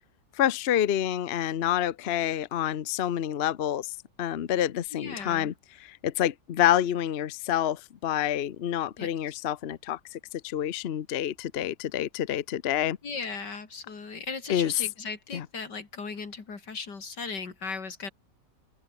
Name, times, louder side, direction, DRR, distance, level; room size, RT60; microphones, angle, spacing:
voice 1, 0.4-3.9 4.2-5.5 5.9-13.0 14.5-14.7 15.3-15.4, left 11 dB, 50° left, 0.8 m, -28 dB
voice 2, 4.9-5.5 9.0-9.1 13.0-18.1, left 4 dB, 85° left, 3.6 m, -37 dB
open air
omnidirectional pair, 1.8 m